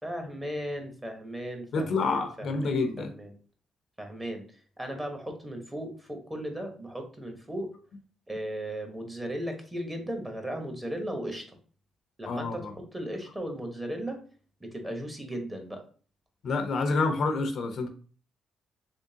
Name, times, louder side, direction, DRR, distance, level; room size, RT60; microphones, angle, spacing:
voice 1, 0.0-3.3 4.0-4.4 4.8-7.7 8.3-11.5 12.2-14.2 14.6-15.8, right 1 dB, 15° right, 4 dB, 1.0 m, -36 dB
voice 2, 1.7-3.1 12.3-12.7 16.4-17.9, left 3 dB, 65° left, 6 dB, 0.6 m, -28 dB
3.6 x 3.2 x 2.7 m, 0.40 s
cardioid pair, 90°, 0 cm